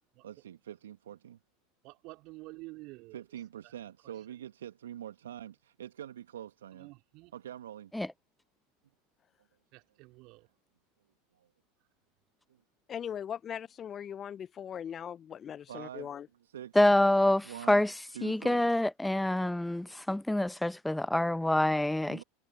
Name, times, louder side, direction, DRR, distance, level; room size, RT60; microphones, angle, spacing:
voice 1, 0.2-1.4 3.1-6.9 7.3-7.9 11.4-11.5 15.7-16.1 16.4-16.8 17.4-17.8 18.1-18.7 22.1-22.2, right 10 dB, 75° right, 1.5 m, -45 dB
voice 2, 1.8-3.2 6.8-7.3 9.7-10.5, right 23 dB, 50° right, 4.3 m, -49 dB
voice 3, 12.9-16.3, left 9 dB, 30° left, 1.0 m, -39 dB
voice 4, 16.7-17.9 18.2-22.2, left 1 dB, 5° left, 1.0 m, -26 dB
figure-of-eight pair, 85°, 0 cm